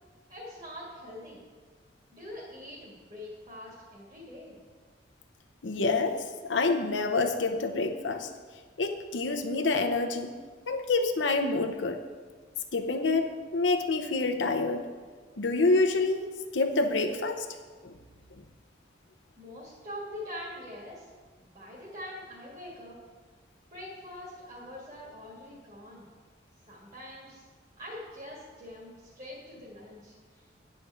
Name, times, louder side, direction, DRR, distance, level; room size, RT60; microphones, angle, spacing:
voice 1, 0.3-1.4 2.1-4.6 19.4-21.1 21.4-23.0 23.7-26.1 26.7-27.5 27.8-30.5, left 1 dB, 40° right, -6 dB, 2.1 m, -44 dB
voice 2, 5.6-8.3 8.8-10.3 10.7-12.0 12.7-14.8 15.4-16.3 16.5-17.5 17.8-17.9, left 3 dB, 85° left, 6 dB, 0.7 m, -27 dB
9.9 x 5.2 x 7.0 m, 1.5 s
head